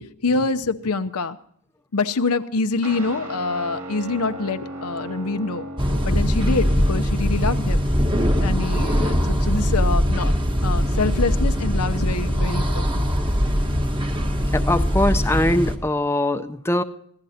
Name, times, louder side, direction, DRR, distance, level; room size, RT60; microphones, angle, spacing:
voice 1, 0.0-1.4 1.9-7.8 8.4-10.3 10.6-13.0, left 3 dB, 85° left, 9 dB, 0.8 m, -26 dB
Guitar, 2.8-11.6, right 1 dB, 65° right, 3.0 m, -38 dB
sound 1, 5.8-15.8, equal, 20° right, 1.3 m, -21 dB
voice 2, 13.4-16.8, left 1 dB, 10° left, 9 dB, 0.6 m, -23 dB
25.5 x 16.5 x 2.8 m, 0.65 s
head